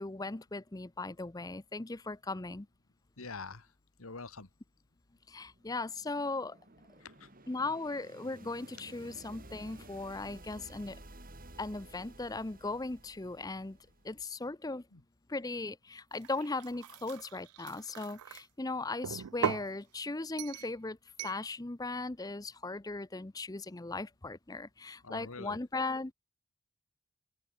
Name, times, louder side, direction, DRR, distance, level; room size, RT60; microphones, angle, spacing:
voice 1, 0.0-2.7 5.3-6.6 7.5-11.0 11.6-13.8 14.0-14.8 15.3-21.0 21.2-26.1, left 3 dB, 15° left, 0.6 m, -38 dB
voice 2, 3.2-3.7 4.0-4.5 7.0-7.3 14.9-15.0 25.0-25.6, left 4 dB, 70° left, 1.8 m, -45 dB
sound 1, 5.4-14.3, right 1 dB, 40° right, 5.1 m, -54 dB
sound 2, 16.1-18.4 19.0-19.7 20.4-20.7 21.2-21.4, right 8 dB, 90° right, 0.5 m, -38 dB
open air
head